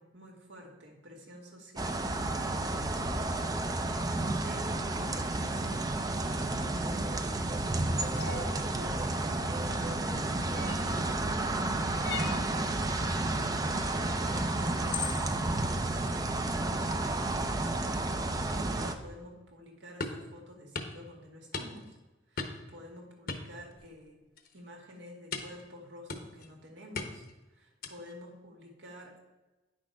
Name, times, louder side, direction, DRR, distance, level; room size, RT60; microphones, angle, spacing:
voice 1, 0.0-3.6 4.4-10.0 10.6-11.4 12.1-13.0 13.7-16.6 17.2-21.9 22.3-24.2 24.5-27.2 27.5-29.2, equal, 75° right, 0 dB, 1.9 m, -50 dB
sound 1, 1.8-18.9, right 2 dB, 20° right, 0.5 m, -31 dB
sound 2, 8.1-8.5 10.5-11.0 12.0-12.5 14.2-14.3 14.9-15.3, left 7 dB, 85° left, 1.1 m, -37 dB
sound 3, 20.0-20.3 20.7-21.0 21.5-22.0 22.4-22.7 23.3-24.0 24.4-24.6 25.3-25.6 26.1-26.5 26.9-27.3 27.8-28.1, left 3 dB, 50° left, 0.9 m, -38 dB
9.7 x 6.3 x 4.5 m, 1.1 s
head